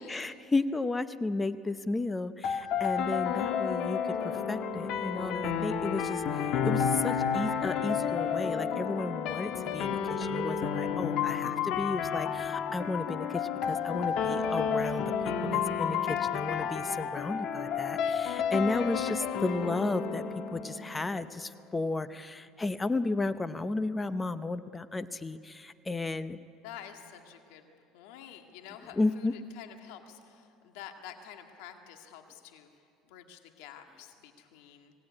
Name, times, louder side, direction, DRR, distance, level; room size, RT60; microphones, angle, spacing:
voice 1, 0.1-6.2 6.6-20.2 20.5-26.4 28.9-29.3, left 2 dB, 15° left, 13 dB, 0.7 m, -33 dB
sound 1, 2.4-21.4, left 7 dB, 60° left, 1.6 m, -31 dB
voice 2, 26.6-27.7 27.9-32.7 33.0-34.9, left 9 dB, 85° left, 5 dB, 1.9 m, -49 dB
25.0 x 17.5 x 9.8 m, 2.5 s
cardioid pair, 120°, 0 cm